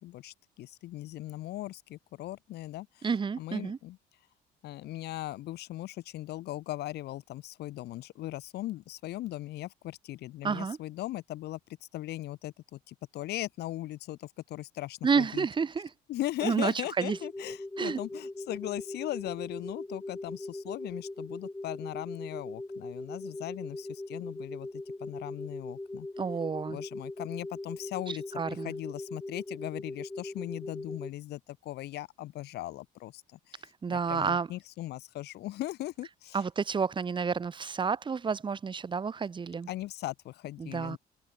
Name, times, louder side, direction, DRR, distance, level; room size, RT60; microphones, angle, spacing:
voice 1, 0.0-3.1 3.4-4.0 4.6-15.5 16.1-26.1 26.7-36.4 39.7-41.0, left 15 dB, 75° left, 4.8 m, -39 dB
voice 2, 3.0-3.8 10.4-10.8 15.0-15.9 16.4-17.2 17.8-18.0 26.2-26.8 28.1-28.7 33.8-34.5 36.3-39.7 40.6-41.0, right 5 dB, 30° right, 1.3 m, -30 dB
sound 1, 17.1-31.1, left 2 dB, 10° left, 4.2 m, -40 dB
cardioid pair, 110°, 17 cm